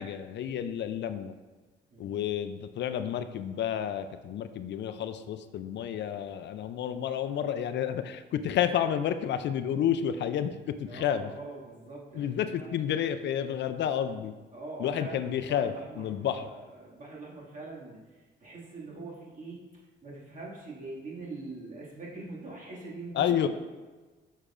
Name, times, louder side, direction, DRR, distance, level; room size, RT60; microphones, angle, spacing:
voice 1, 0.0-1.3 2.0-11.3 12.1-14.3 14.8-16.5 23.1-23.5, left 9 dB, 65° left, 10 dB, 0.4 m, -30 dB
voice 2, 10.8-12.8 14.5-23.5, right 2 dB, 40° right, -5 dB, 2.0 m, -43 dB
6.6 x 6.4 x 2.5 m, 1.3 s
cardioid pair, 90°, 20 cm